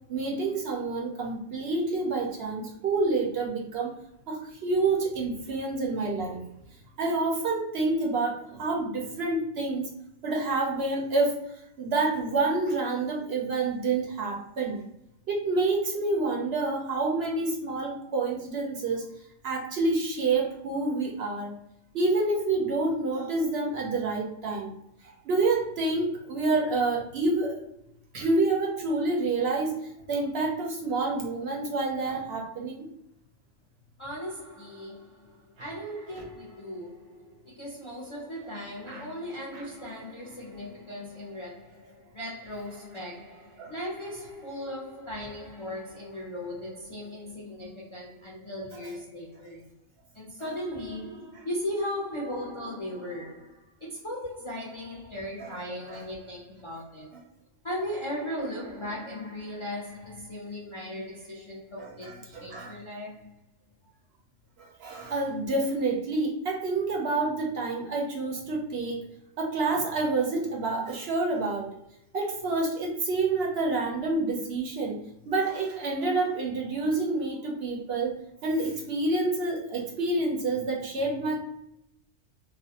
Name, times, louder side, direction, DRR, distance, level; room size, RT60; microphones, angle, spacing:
voice 1, 0.1-3.9 4.3-6.4 7.0-9.9 10.2-11.3 11.8-14.8 15.3-19.1 19.4-21.5 21.9-24.8 25.0-27.7 28.1-32.9 36.2-36.3 38.9-39.1 39.5-39.6 43.6-43.7 55.9-56.0 62.3-62.8 64.6-69.0 69.4-71.7 72.1-75.0 75.3-81.4, right 3 dB, 60° right, 0.7 m, -28 dB
voice 2, 34.0-49.6 50.1-57.2 57.6-63.3, left 1 dB, 40° left, 0.4 m, -37 dB
2.4 x 2.1 x 2.7 m
omnidirectional pair, 1.3 m